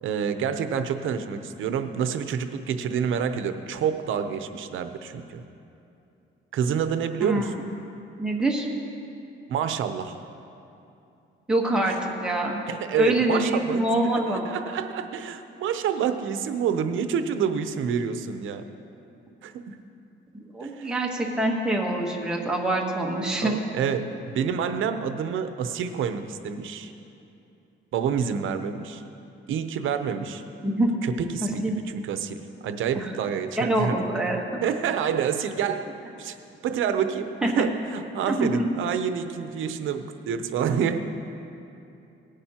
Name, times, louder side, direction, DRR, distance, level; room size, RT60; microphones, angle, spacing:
voice 1, 0.0-5.4 6.5-7.5 9.5-10.2 11.9-12.0 12.7-13.9 14.3-18.6 19.4-19.8 20.6-20.9 23.4-26.9 27.9-29.0 29.5-30.4 31.0-32.4 32.6-34.0 34.6-35.9 36.2-36.4 36.6-41.0, right 7 dB, 75° right, 9 dB, 0.7 m, -28 dB
voice 2, 7.2-7.5 8.2-8.7 11.5-12.6 13.0-14.5 20.5-23.5 30.6-30.9 31.4-31.8 32.9-33.1 33.6-34.6 37.4-37.7 38.3-38.6, right 1 dB, 5° right, -1 dB, 1.2 m, -25 dB
18.0 x 10.0 x 2.9 m, 2.7 s
cardioid pair, 150°, 21 cm